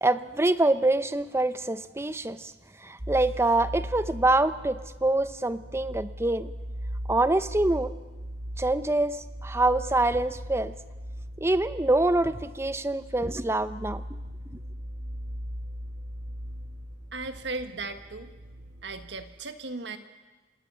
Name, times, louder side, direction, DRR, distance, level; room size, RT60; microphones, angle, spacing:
voice 1, 0.0-2.5 2.8-6.5 7.1-7.9 8.6-10.7 11.4-14.0, right 2 dB, 15° right, 13 dB, 0.7 m, -25 dB
sound 1, 3.0-19.2, equal, 50° right, 3.1 m, -39 dB
voice 2, 17.1-18.3 18.8-20.0, right 3 dB, 75° right, 8 dB, 1.6 m, -36 dB
28.0 x 17.5 x 6.9 m, 1.3 s
head